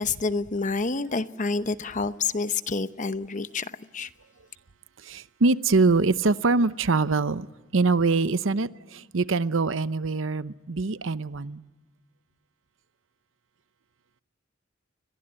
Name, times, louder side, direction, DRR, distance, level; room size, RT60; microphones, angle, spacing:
voice 1, 0.0-4.1, left 4 dB, 40° left, 0.9 m, -28 dB
voice 2, 5.1-7.5 7.7-11.6, right 3 dB, 75° right, 0.8 m, -24 dB
30.0 x 22.5 x 8.8 m
head